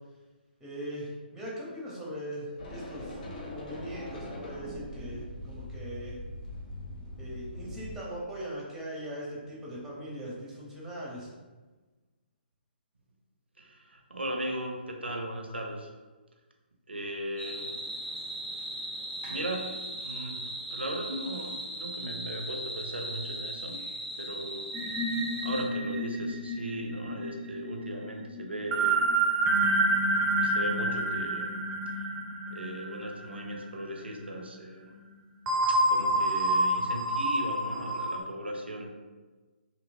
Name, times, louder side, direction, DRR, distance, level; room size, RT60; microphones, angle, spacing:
voice 1, 0.6-6.2 7.2-11.3, right 1 dB, 5° right, -6 dB, 0.9 m, -40 dB
sound 1, 2.6-8.0, left 1 dB, 50° left, 0.6 m, -41 dB
voice 2, 13.6-15.9 16.9-17.7 19.2-23.9 24.2-29.1 30.3-31.6 32.5-34.9 35.7-39.0, right 1 dB, 85° right, 2 dB, 0.6 m, -37 dB
sound 2, 17.4-25.6, right 1 dB, 15° left, 1.0 m, -38 dB
sound 3, 24.7-33.6 34.0-34.2 35.5-38.2, right 2 dB, 25° right, 0.5 m, -28 dB
3.0 x 2.8 x 2.6 m, 1.3 s
figure-of-eight pair, 135°, 6 cm